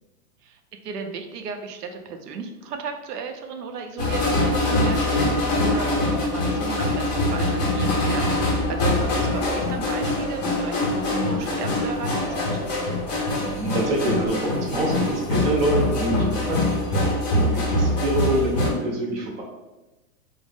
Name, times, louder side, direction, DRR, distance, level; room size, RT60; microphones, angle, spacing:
voice 1, 0.4-12.5, right 5 dB, 85° right, 5 dB, 0.6 m, -35 dB
sound 1, 4.0-18.7, left 1 dB, 30° left, 0.5 m, -23 dB
voice 2, 13.4-19.4, right 1 dB, 40° right, -1 dB, 0.7 m, -26 dB
2.5 x 2.0 x 3.4 m, 1.1 s
hypercardioid pair, 155°, 46 cm